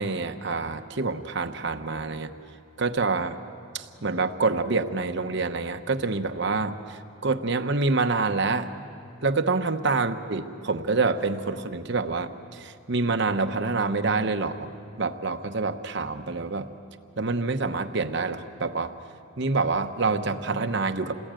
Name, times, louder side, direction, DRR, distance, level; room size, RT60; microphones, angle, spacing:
voice 1, 0.0-2.3 2.8-3.4 3.7-8.7 9.2-14.7 15.0-16.7 17.2-18.9 19.4-21.1, right 3 dB, 55° right, 7 dB, 1.0 m, -27 dB
28.5 x 20.0 x 9.0 m, 2.5 s
head